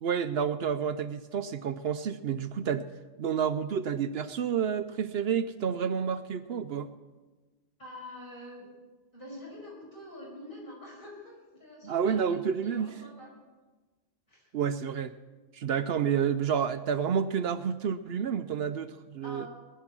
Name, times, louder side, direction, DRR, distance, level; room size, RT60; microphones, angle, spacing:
voice 1, 0.0-2.9 3.2-6.9 11.8-12.9 14.5-15.1 15.5-19.5, right 7 dB, 70° right, 11 dB, 0.8 m, -29 dB
voice 2, 7.8-8.7 9.1-13.3 14.3-14.5 19.2-19.5, left 1 dB, 50° left, -4 dB, 5.9 m, -46 dB
19.5 x 10.5 x 6.1 m, 1.3 s
omnidirectional pair, 1.1 m